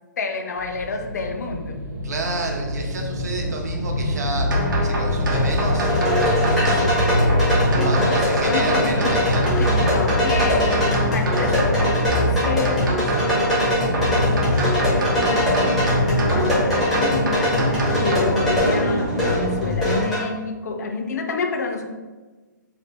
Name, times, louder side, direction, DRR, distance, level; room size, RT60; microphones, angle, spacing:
voice 1, 0.2-1.8 6.5-9.2 9.6-14.3 14.8-15.7 16.1-17.7 18.0-21.9, left 4 dB, 55° left, 5 dB, 0.3 m, -29 dB
sound 1, 0.5-20.0, left 1 dB, 25° right, 0.8 m, -25 dB
voice 2, 2.0-5.9 7.7-9.5, right 3 dB, 55° right, 1 dB, 0.6 m, -30 dB
sound 2, 4.5-18.2, right 1 dB, 85° right, 0.8 m, -26 dB
sound 3, 5.3-20.2, left 1 dB, ahead, 0.5 m, -23 dB
2.8 x 2.3 x 3.2 m, 1.3 s
hypercardioid pair, 175°, 11 cm